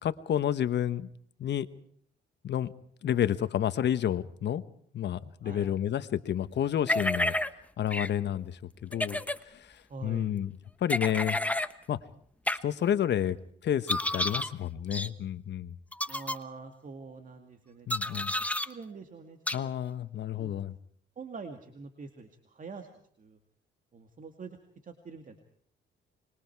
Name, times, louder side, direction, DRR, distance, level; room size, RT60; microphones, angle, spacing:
voice 1, 0.0-1.1 1.4-1.7 2.4-2.7 3.0-4.6 4.9-7.3 7.8-10.5 10.8-11.4 11.9-12.0 12.6-13.4 13.6-15.8 17.9-18.3 19.5-20.7, left 10 dB, 60° left, 13 dB, 1.2 m, -30 dB
sound 1, 6.9-7.5 7.9-8.1 8.9-9.4 10.9-11.7 12.5-12.6 13.9-14.5 14.9-15.1 15.9-16.4 17.9-18.7 19.5-19.6, left 1 dB, 5° left, 1.1 m, -30 dB
voice 2, 9.9-10.4 16.1-19.7 20.4-20.5 21.2-22.9 23.2-23.4 23.9-24.6 24.8-25.4, right 4 dB, 40° right, 6 dB, 2.3 m, -45 dB
25.5 x 22.0 x 4.7 m, 0.63 s
cardioid pair, 90°, 20 cm